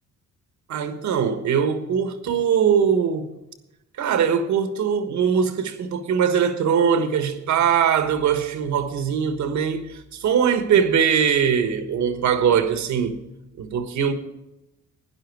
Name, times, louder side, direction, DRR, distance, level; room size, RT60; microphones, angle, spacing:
voice 1, 0.7-3.3 4.0-13.2 13.6-14.1, right 7 dB, 70° right, 1.5 m, -21 dB
12.5 x 10.0 x 4.8 m
cardioid pair, 90°, 30 cm